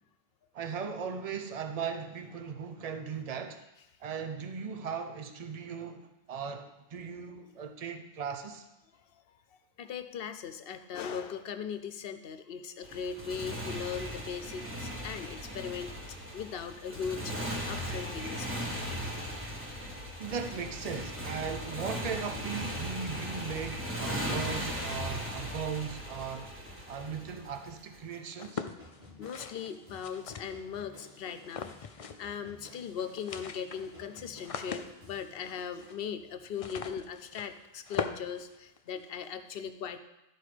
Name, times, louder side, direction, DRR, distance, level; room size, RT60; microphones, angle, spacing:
voice 1, 0.5-3.6 4.0-8.7 20.2-26.5 26.9-28.7, right 6 dB, 40° right, 6 dB, 0.8 m, -38 dB
voice 2, 9.8-18.7 29.2-31.7 32.2-40.0, left 7 dB, 65° left, 10 dB, 0.8 m, -39 dB
Motorcycle, 12.8-28.0, equal, 10° right, 1.3 m, -38 dB
sound 1, 28.3-30.8 31.4-32.4 32.6-32.7 33.0-39.2, left 5 dB, 45° left, 0.5 m, -41 dB
sound 2, 28.8-35.6, left 2 dB, 75° right, 2.8 m, -54 dB
12.0 x 4.7 x 4.9 m, 0.94 s
omnidirectional pair, 1.0 m